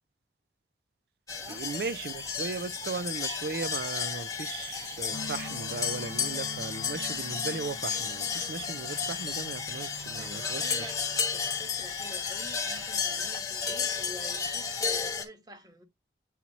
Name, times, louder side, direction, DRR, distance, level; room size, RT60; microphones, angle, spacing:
sound 1, 1.3-15.2, left 6 dB, 20° left, 1.0 m, -33 dB
voice 1, 1.5-10.9, right 4 dB, 60° right, 0.4 m, -37 dB
sound 2, 5.1-13.5, left 2 dB, 85° left, 0.9 m, -46 dB
voice 2, 9.9-11.0 11.3-15.8, equal, 20° right, 1.2 m, -47 dB
8.6 x 3.0 x 4.0 m
head